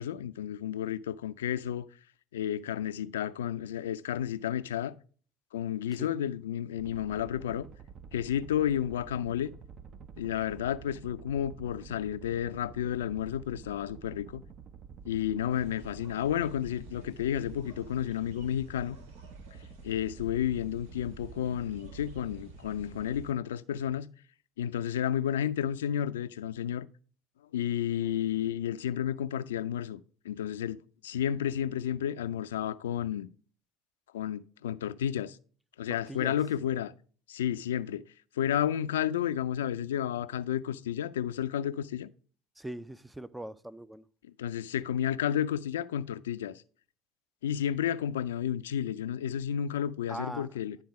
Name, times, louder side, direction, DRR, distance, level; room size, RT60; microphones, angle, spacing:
voice 1, 0.0-1.9 2.3-5.0 5.5-7.7 8.1-9.5 10.2-14.4 15.1-19.0 19.8-24.1 24.6-26.9 27.5-33.3 34.1-35.4 35.8-36.9 37.3-38.0 38.4-42.1 44.2-46.6 47.4-50.8, left 10 dB, 80° left, 0.4 m, -31 dB
sound 1, 6.8-23.3, right 6 dB, 45° right, 0.7 m, -49 dB
sound 2, 15.5-23.3, right 2 dB, 80° right, 1.2 m, -52 dB
voice 2, 42.6-44.0 50.1-50.5, right 1 dB, 10° right, 0.4 m, -40 dB
11.0 x 3.9 x 4.7 m
hypercardioid pair, 70°, 0 cm